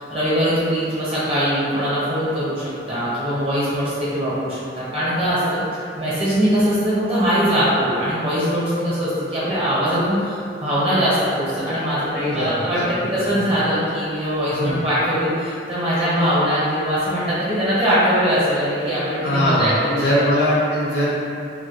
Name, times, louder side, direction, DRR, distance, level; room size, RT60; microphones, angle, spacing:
voice 1, 0.0-20.2, equal, 30° right, -10 dB, 0.9 m, -21 dB
voice 2, 12.1-13.5 14.5-14.8 19.2-21.1, equal, 65° left, -7 dB, 0.6 m, -22 dB
2.2 x 2.0 x 3.0 m, 2.5 s
head